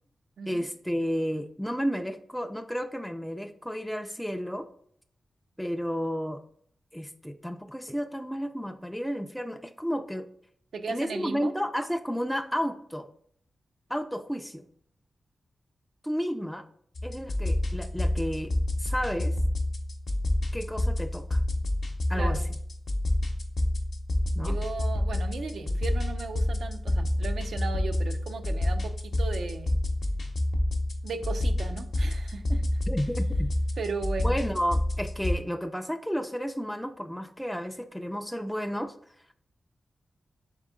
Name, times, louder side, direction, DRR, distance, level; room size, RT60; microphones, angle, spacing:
voice 1, 0.5-4.7 5.6-6.4 6.9-10.3 10.9-13.1 13.9-14.7 16.0-16.7 17.0-19.4 20.5-21.4 22.1-22.4 24.4-24.6 32.9-33.5 34.2-38.9, equal, ahead, 6 dB, 0.3 m, -32 dB
voice 2, 10.7-11.5 22.1-22.5 24.4-29.8 31.0-32.6 33.8-34.4, right 4 dB, 80° right, 8 dB, 0.4 m, -36 dB
sound 1, 16.9-35.4, left 1 dB, 70° left, 0.7 m, -28 dB
3.6 x 3.5 x 3.6 m, 0.65 s
cardioid pair, 40°, 0 cm